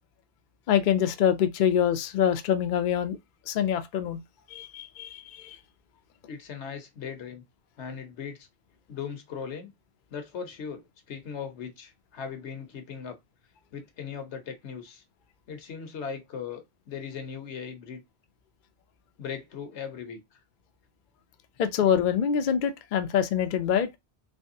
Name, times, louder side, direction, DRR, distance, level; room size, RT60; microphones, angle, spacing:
voice 1, 0.7-3.2 3.5-4.2 4.5-5.6 21.6-23.9, left 9 dB, 60° left, 0.6 m, -25 dB
voice 2, 6.3-7.4 7.8-8.5 8.9-9.7 10.1-13.2 13.7-15.0 15.5-18.0 19.2-20.4, left 6 dB, 80° left, 1.1 m, -38 dB
3.4 x 3.2 x 2.6 m
omnidirectional pair, 1.1 m